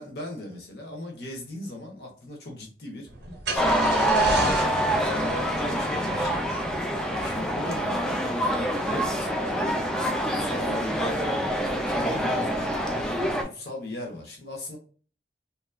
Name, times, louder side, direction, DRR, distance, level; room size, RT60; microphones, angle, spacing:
voice 1, 0.0-3.1 3.5-6.8 7.2-8.2 8.7-13.0 13.4-14.8, left 2 dB, 65° left, 1 dB, 0.9 m, -39 dB
Car / Engine starting, 3.1-7.7, right 2 dB, 85° right, 0.7 m, -35 dB
sound 1, 3.6-13.4, equal, 5° left, 0.3 m, -26 dB
2.9 x 2.3 x 2.2 m, 0.41 s
head